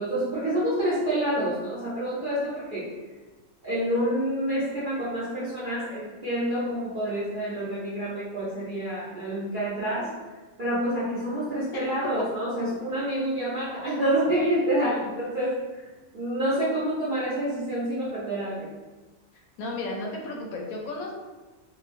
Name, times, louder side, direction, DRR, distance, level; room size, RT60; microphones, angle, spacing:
voice 1, 0.0-2.9 3.6-10.1 10.6-15.5 16.1-18.7, right 1 dB, 55° right, -9 dB, 0.5 m, -28 dB
voice 2, 14.8-15.1 19.6-21.1, left 2 dB, 75° left, -1 dB, 1.0 m, -34 dB
3.0 x 2.2 x 2.5 m, 1.2 s
omnidirectional pair, 1.5 m